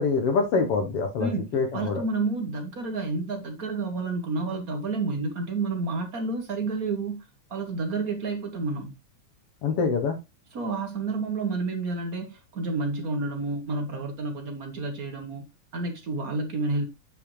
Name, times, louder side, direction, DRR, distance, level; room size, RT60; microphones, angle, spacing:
voice 1, 0.0-2.0 9.6-10.2, left 4 dB, 65° left, 1.6 m, -25 dB
voice 2, 1.2-7.2 7.5-8.9 10.5-15.4 15.7-16.8, right 3 dB, 65° right, 0.8 m, -30 dB
8.6 x 5.6 x 3.1 m
omnidirectional pair, 3.4 m